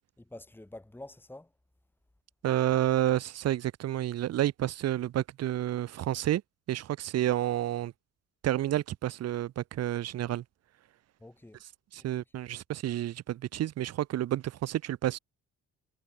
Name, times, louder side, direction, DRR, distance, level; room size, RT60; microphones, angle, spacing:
voice 1, 0.2-1.5 11.2-11.6 11.9-12.2, left 1 dB, 5° left, 2.0 m, -48 dB
voice 2, 2.4-6.4 6.7-7.9 8.4-10.4 11.9-15.2, right 13 dB, 55° right, 0.6 m, -30 dB
cardioid pair, 90°, 30 cm